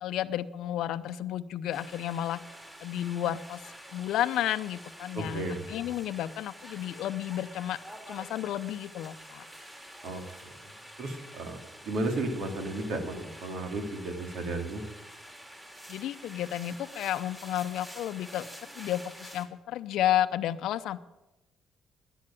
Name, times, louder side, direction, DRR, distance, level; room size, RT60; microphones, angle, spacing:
voice 1, 0.0-2.4 2.8-3.6 3.9-7.8 8.1-9.4 15.9-18.5 18.8-21.0, left 12 dB, 75° left, 14 dB, 0.7 m, -32 dB
sound 1, 1.7-19.4, equal, 15° right, 3.3 m, -48 dB
voice 2, 5.1-5.6 10.0-10.2 11.0-14.8, right 2 dB, 75° right, 5 dB, 2.6 m, -33 dB
11.0 x 10.0 x 8.9 m, 0.99 s
supercardioid pair, 70°, 0 cm